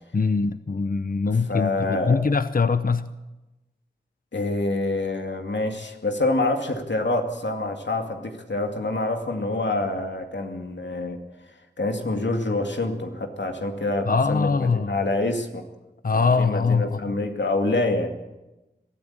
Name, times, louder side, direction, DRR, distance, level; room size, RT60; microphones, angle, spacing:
voice 1, 0.1-3.1 14.1-15.0 16.0-17.1, left 4 dB, 50° left, 12 dB, 0.7 m, -22 dB
voice 2, 1.3-2.2 4.3-11.2 11.8-15.6 16.2-18.1, left 2 dB, 80° left, 4 dB, 2.4 m, -26 dB
22.5 x 14.0 x 8.8 m, 1.0 s
wide cardioid pair, 55°, 18 cm